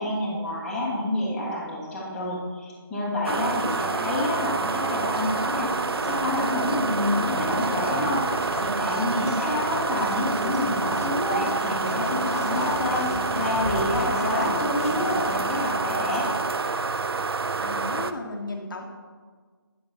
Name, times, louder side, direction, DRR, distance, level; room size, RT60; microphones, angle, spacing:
voice 1, 0.0-5.7 6.0-8.2 8.6-13.0 13.3-16.3, left 1 dB, 5° left, -9 dB, 1.2 m, -28 dB
sound 1, 3.2-18.1, right 4 dB, 90° right, 0.4 m, -28 dB
voice 2, 3.3-4.0 17.6-18.8, left 2 dB, 60° left, 2 dB, 1.0 m, -35 dB
sound 2, 5.3-15.8, left 3 dB, 35° left, 0.6 m, -36 dB
8.6 x 6.9 x 2.8 m, 1.5 s
figure-of-eight pair, 160°, 12 cm